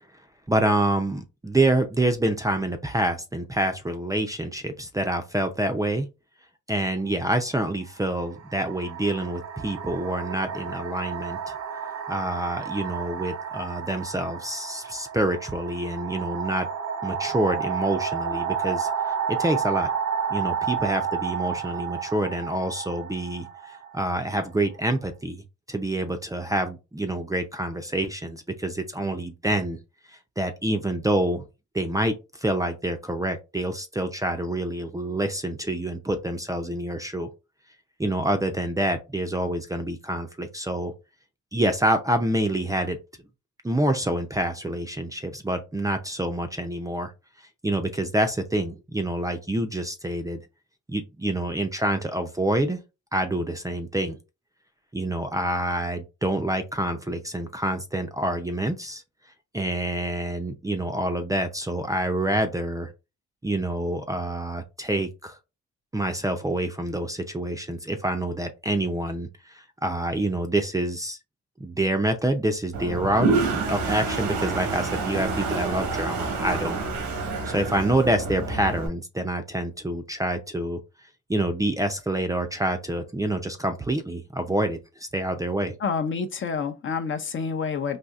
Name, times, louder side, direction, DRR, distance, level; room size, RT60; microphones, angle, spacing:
voice 1, 0.5-6.1 6.7-11.5 12.1-16.7 17.0-19.9 20.3-25.4 25.7-29.8 30.1-31.4 31.7-37.3 38.0-40.9 41.5-43.0 43.6-47.1 47.6-50.4 50.9-52.8 53.1-54.2 54.9-59.0 59.5-62.9 63.4-65.4 65.9-71.2 71.6-76.8 77.5-80.8 81.3-85.7, right 1 dB, 10° right, 0.5 m, -27 dB
sound 1, 7.0-7.2 8.1-24.8, right 7 dB, 60° right, 0.7 m, -31 dB
Toilet flush, 72.7-78.9, right 3 dB, 85° right, 1.2 m, -28 dB
voice 2, 85.8-88.0, left 5 dB, 40° left, 0.6 m, -28 dB
4.1 x 2.7 x 2.4 m
cardioid pair, 90°, 30 cm